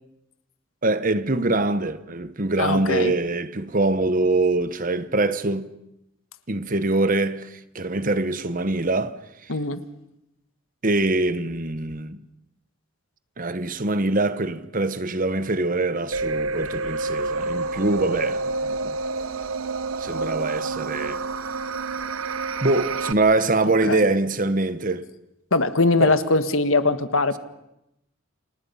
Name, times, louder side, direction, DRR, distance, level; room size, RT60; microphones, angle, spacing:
voice 1, 0.8-5.7 6.5-9.1 9.4-9.5 10.8-12.2 13.4-19.0 20.0-21.2 22.6-25.0 26.0-26.2, right 2 dB, 40° right, 1.1 m, -24 dB
voice 2, 2.6-3.1 9.5-9.8 23.9-24.0 25.5-27.4, left 3 dB, 75° left, 1.5 m, -21 dB
sound 1, 16.1-23.1, right 3 dB, 85° right, 0.9 m, -28 dB
30.0 x 27.5 x 5.7 m
head